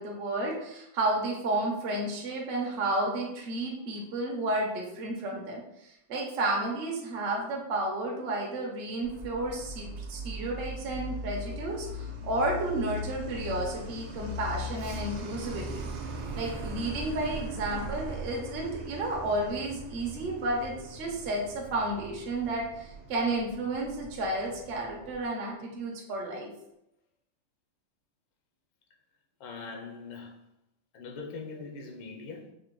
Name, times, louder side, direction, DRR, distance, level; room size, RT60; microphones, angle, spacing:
voice 1, 0.0-15.9 16.3-26.5, right 2 dB, 60° right, 0.6 m, -32 dB
Truck, 9.0-25.3, right 1 dB, 80° right, 1.4 m, -39 dB
voice 2, 29.4-30.4 30.9-32.5, left 4 dB, 90° left, 1.5 m, -41 dB
5.3 x 2.2 x 3.0 m
omnidirectional pair, 2.2 m